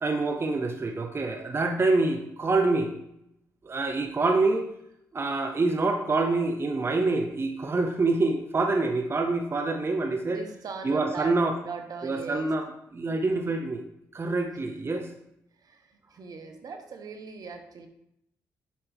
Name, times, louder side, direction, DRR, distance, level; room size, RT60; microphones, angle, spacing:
voice 1, 0.0-3.0 3.6-4.7 5.1-10.4 10.8-11.6 12.0-12.7 12.9-13.8 14.1-15.1, right 3 dB, 35° right, 5 dB, 0.8 m, -26 dB
voice 2, 10.2-11.4 11.6-12.5 15.6-17.9, right 5 dB, 60° right, 6 dB, 1.0 m, -40 dB
7.2 x 5.9 x 3.5 m, 0.78 s
supercardioid pair, 50°, 7 cm